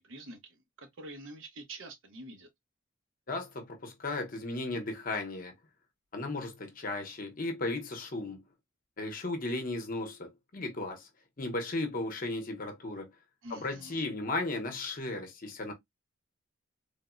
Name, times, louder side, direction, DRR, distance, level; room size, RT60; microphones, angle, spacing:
voice 1, 0.0-2.5 13.4-14.0, right 2 dB, 75° right, 0.8 m, -47 dB
voice 2, 3.3-5.5 6.1-8.4 9.0-11.1 11.4-13.1 13.5-15.7, left 2 dB, 45° left, 0.7 m, -35 dB
3.4 x 2.0 x 2.3 m
head